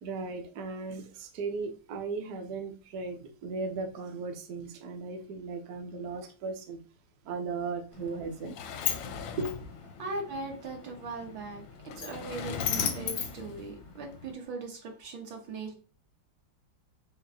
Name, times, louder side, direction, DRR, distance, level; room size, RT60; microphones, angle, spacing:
voice 1, 0.0-6.8 7.2-8.6 9.4-9.5, right 4 dB, 65° right, 5 dB, 1.0 m, -36 dB
Sliding door, 7.9-14.3, left 7 dB, 85° left, 1.3 m, -36 dB
voice 2, 10.0-15.7, right 3 dB, 80° right, 1 dB, 1.8 m, -39 dB
5.6 x 2.1 x 2.6 m, 0.36 s
omnidirectional pair, 2.0 m